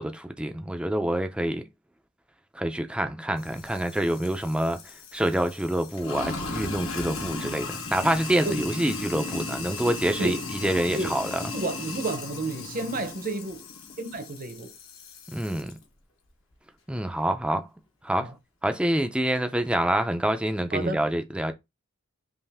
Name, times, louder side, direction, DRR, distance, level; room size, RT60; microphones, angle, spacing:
voice 1, 0.0-1.6 2.5-4.8 5.1-11.4 15.3-15.7 16.9-17.7 18.0-18.3 18.6-21.5, right 1 dB, 5° right, 0.5 m, -26 dB
Sink (filling or washing), 3.4-15.7, left 3 dB, 70° left, 1.2 m, -36 dB
voice 2, 11.5-13.7 14.0-14.8 18.2-18.4 20.7-21.0, right 2 dB, 40° right, 0.8 m, -31 dB
5.5 x 2.6 x 3.5 m
head